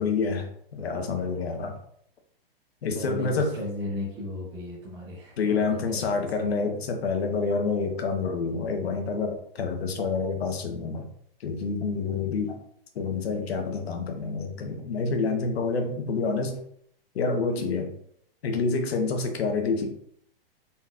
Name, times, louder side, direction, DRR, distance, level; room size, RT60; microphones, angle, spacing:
voice 1, 0.0-1.7 2.8-3.5 5.4-11.1 11.4-12.6 12.9-16.5 17.1-17.9 18.4-19.9, left 4 dB, 90° left, 4 dB, 1.0 m, -28 dB
voice 2, 2.8-6.1, left 1 dB, 15° right, -5 dB, 0.6 m, -35 dB
4.1 x 3.8 x 2.3 m, 0.67 s
hypercardioid pair, 155°, 30 cm